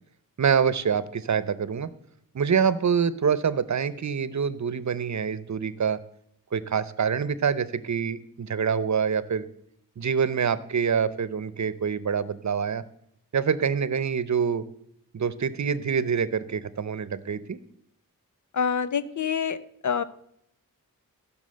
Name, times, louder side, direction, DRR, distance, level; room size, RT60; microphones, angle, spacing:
voice 1, 0.4-1.9 2.3-6.0 6.5-9.4 10.0-12.8 13.3-14.6 15.1-17.6, right 6 dB, 55° right, 16 dB, 0.8 m, -26 dB
voice 2, 18.5-19.6 19.8-20.0, left 7 dB, 60° left, 13 dB, 0.8 m, -26 dB
16.0 x 6.1 x 7.8 m, 0.73 s
wide cardioid pair, 95°, 34 cm